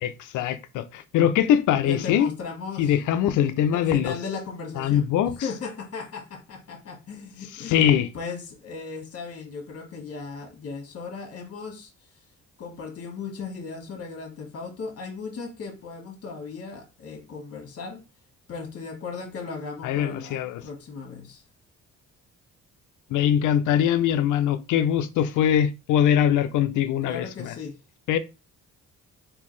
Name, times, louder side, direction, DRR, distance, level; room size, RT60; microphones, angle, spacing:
voice 1, 0.0-2.3 2.8-4.1 4.8-5.3 7.5-8.1 19.8-20.6 23.1-27.5 28.1-28.2, left 9 dB, 80° left, 0.6 m, -22 dB
voice 2, 1.9-3.0 3.7-5.1 5.4-11.9 12.6-18.0 18.5-21.4 27.0-27.8, left 5 dB, 55° left, 1.5 m, -37 dB
3.6 x 2.9 x 3.2 m
cardioid pair, 90°, 30 cm